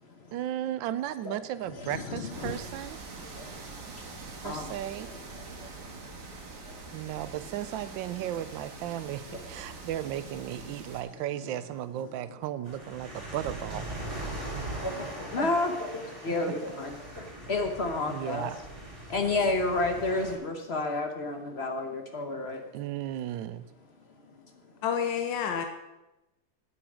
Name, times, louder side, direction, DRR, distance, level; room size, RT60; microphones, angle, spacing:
voice 1, 0.3-3.0 4.4-5.1 6.9-13.9 15.4-15.5 16.3-16.4 18.1-18.6 22.7-23.7, right 12 dB, 85° right, 14 dB, 1.3 m, -35 dB
voice 2, 1.7-2.6 3.1-3.9 4.3-4.7 5.3-7.2 9.3-9.9 14.3-14.4 14.7-18.5 19.1-22.7 24.3-24.4, left 3 dB, 45° left, 4 dB, 1.0 m, -32 dB
sound 1, 2.3-11.0, right 4 dB, 65° right, 1.9 m, -44 dB
sound 2, 12.7-20.4, right 1 dB, 40° right, 2.9 m, -40 dB
voice 3, 24.8-25.7, left 8 dB, 75° left, 6 dB, 1.5 m, -29 dB
8.8 x 8.7 x 4.9 m, 0.96 s
omnidirectional pair, 2.0 m